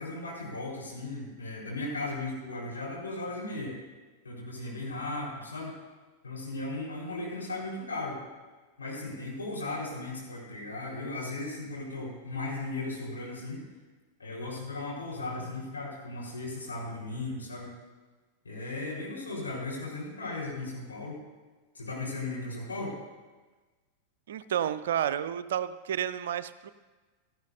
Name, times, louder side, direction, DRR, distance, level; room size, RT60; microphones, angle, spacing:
voice 1, 0.0-3.8 4.2-5.7 6.2-8.2 8.8-13.6 14.2-17.7 18.4-21.2 21.7-23.0, left 2 dB, 75° left, -3 dB, 4.5 m, -36 dB
voice 2, 24.3-26.7, right 9 dB, 60° right, 13 dB, 0.4 m, -31 dB
17.5 x 13.0 x 2.7 m, 1.3 s
figure-of-eight pair, 90°, 0 cm